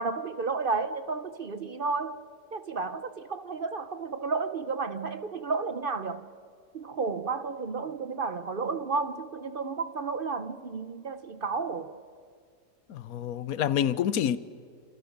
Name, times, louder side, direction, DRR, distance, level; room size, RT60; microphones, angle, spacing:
voice 1, 0.0-2.2 2.5-6.3 6.7-12.0, right 4 dB, 45° right, 0.8 m, -32 dB
voice 2, 12.9-14.4, left 10 dB, 80° left, 1.2 m, -27 dB
30.0 x 27.0 x 5.3 m
omnidirectional pair, 1.5 m